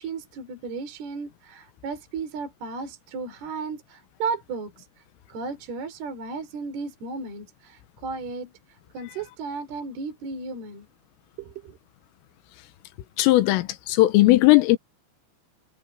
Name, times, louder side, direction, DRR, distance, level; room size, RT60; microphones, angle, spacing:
voice 1, 0.0-4.9 5.3-10.9 11.4-11.8, right 4 dB, 55° right, 5.5 m, -34 dB
voice 2, 13.2-14.8, left 18 dB, 85° left, 3.7 m, -17 dB
omnidirectional pair, 5.8 m